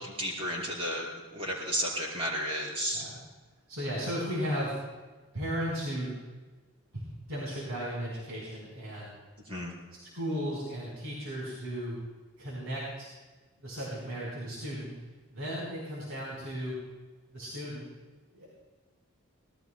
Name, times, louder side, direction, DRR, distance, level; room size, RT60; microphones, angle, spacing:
voice 1, 0.0-3.1 9.5-9.7, equal, 25° right, -3 dB, 4.5 m, -33 dB
voice 2, 3.7-4.7 5.3-6.1 6.9-9.1 10.0-12.0 12.4-13.1 13.6-14.9 15.3-16.8 17.3-17.9 18.3-18.5, equal, 85° right, -5 dB, 4.6 m, -35 dB
24.0 x 19.0 x 2.3 m, 1.3 s
head